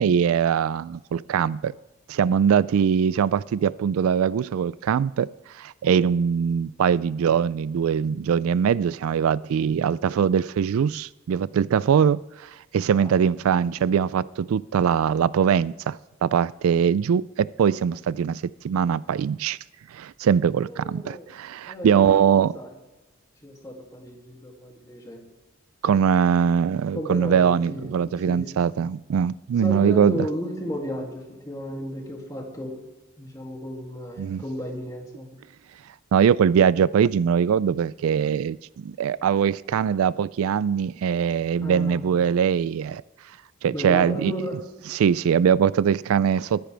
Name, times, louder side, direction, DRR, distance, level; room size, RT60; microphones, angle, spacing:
voice 1, 0.0-1.7 2.1-5.3 5.5-19.6 19.9-22.5 25.8-30.2 34.2-34.4 36.1-43.0 43.6-44.3 44.9-46.7, right 7 dB, 75° right, 0.3 m, -22 dB
voice 2, 20.6-21.3 21.7-22.7 23.4-25.3 26.9-28.9 29.6-32.8 33.2-35.4 41.6-42.1 43.7-44.6, equal, 15° left, 2.4 m, -34 dB
22.5 x 10.0 x 3.4 m
head